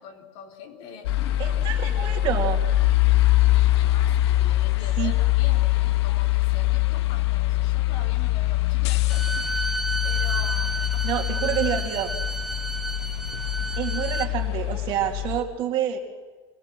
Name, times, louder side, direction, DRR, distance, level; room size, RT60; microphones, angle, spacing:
voice 1, 0.0-2.4 3.5-12.1, left 6 dB, 50° left, 2 dB, 3.6 m, -44 dB
sound 1, 1.0-15.4, left 16 dB, 80° left, 1.2 m, -23 dB
voice 2, 1.4-2.6 5.0-5.1 11.0-12.1 13.8-16.0, right 10 dB, 35° right, 2 dB, 2.6 m, -27 dB
Bowed string instrument, 9.1-14.3, right 2 dB, ahead, 0.7 m, -31 dB
25.5 x 19.0 x 7.7 m, 1.3 s
supercardioid pair, 175°, 14 cm